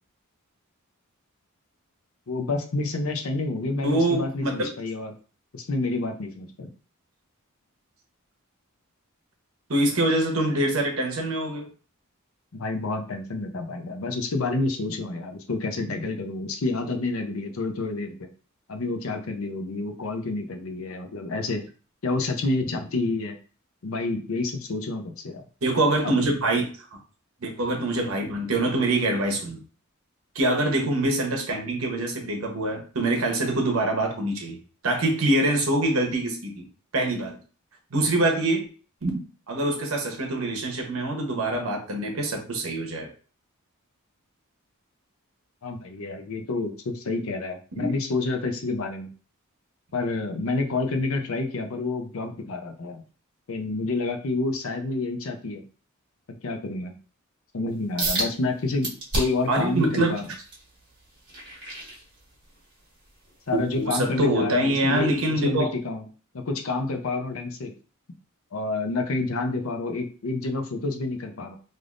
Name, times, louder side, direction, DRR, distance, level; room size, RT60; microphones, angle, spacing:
voice 1, 2.3-5.1 5.5-6.7 12.5-18.3 18.7-21.7 22.0-23.4 23.8-25.4 26.0-26.1 45.6-49.1 49.9-53.0 53.5-55.6 56.4-57.0 57.5-60.3 63.5-66.1 66.3-67.7 68.5-71.6, left 3 dB, 75° left, 5 dB, 0.6 m, -29 dB
voice 2, 3.8-4.7 9.7-11.7 25.6-27.0 27.4-29.6 30.3-34.6 34.8-36.6 36.9-37.4 37.9-38.7 39.0-43.1 47.8-47.9 59.5-60.2 63.5-65.7, right 1 dB, 70° right, 2 dB, 0.9 m, -25 dB
sound 1, 58.0-58.3 58.8-59.5 60.0-62.6 63.1-63.3 63.8-63.9, right 2 dB, 50° right, 1.3 m, -30 dB
3.3 x 2.6 x 2.4 m, 0.39 s
head